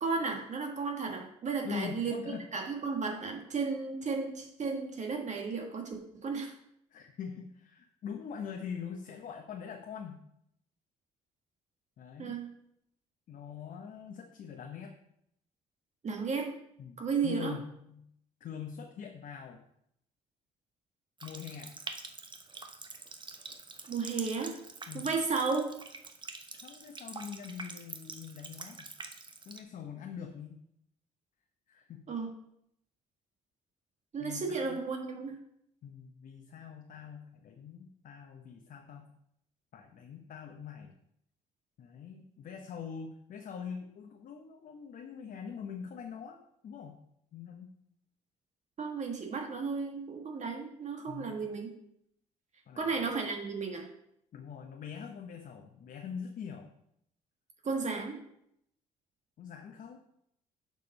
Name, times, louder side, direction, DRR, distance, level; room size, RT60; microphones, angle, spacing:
voice 1, 0.0-2.2 2.5-6.5 12.2-12.5 16.0-16.5 17.0-17.6 23.9-24.5 24.9-25.7 32.1-32.3 34.1-35.4 48.8-51.7 52.8-53.9 57.6-58.2, right 4 dB, 45° right, 2 dB, 1.7 m, -34 dB
voice 2, 1.6-2.4 6.9-10.2 12.0-12.3 13.3-14.9 16.8-18.1 18.4-19.6 21.2-21.7 24.9-25.1 26.5-28.9 29.4-30.6 31.7-32.1 34.2-34.8 35.8-39.1 39.7-40.9 41.8-47.0 47.3-47.7 51.1-51.4 52.7-52.9 54.3-56.7 59.4-60.0, left 7 dB, 55° left, 3 dB, 1.0 m, -43 dB
Water tap faucet, 21.2-29.6, right 3 dB, 30° right, 1.1 m, -46 dB
7.0 x 4.7 x 5.3 m, 0.74 s
hypercardioid pair, 55°, 17 cm